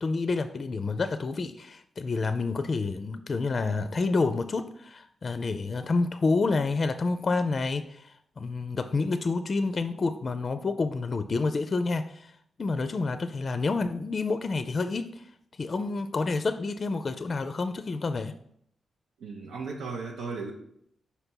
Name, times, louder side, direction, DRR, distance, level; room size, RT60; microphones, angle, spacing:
voice 1, 0.0-12.3 12.6-15.2 15.6-18.3, left 3 dB, 50° left, 10 dB, 0.4 m, -29 dB
voice 2, 19.2-20.5, right 4 dB, 90° right, -2 dB, 0.7 m, -36 dB
5.3 x 4.2 x 4.5 m, 0.70 s
cardioid pair, 55°, 0 cm